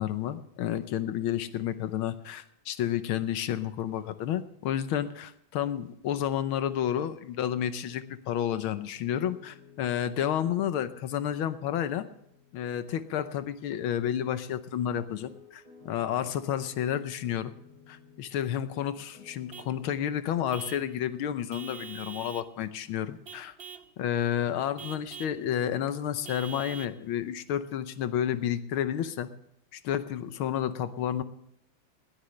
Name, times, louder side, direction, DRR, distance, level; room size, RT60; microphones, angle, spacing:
voice 1, 0.0-12.1 12.5-17.5 17.9-23.5 24.0-29.3 29.7-31.2, left 10 dB, 80° left, 12 dB, 1.7 m, -31 dB
Piano, 15.2-18.3 18.7-20.7, left 5 dB, 20° left, 6.3 m, -56 dB
Vehicle horn car horn honking / Truck, 19.5-19.8 20.5-20.9 21.5-22.5 23.3-23.9 24.8-25.4 26.3-27.0, right 7 dB, 65° right, 0.5 m, -44 dB
20.5 x 13.0 x 3.2 m, 0.75 s
omnidirectional pair, 2.3 m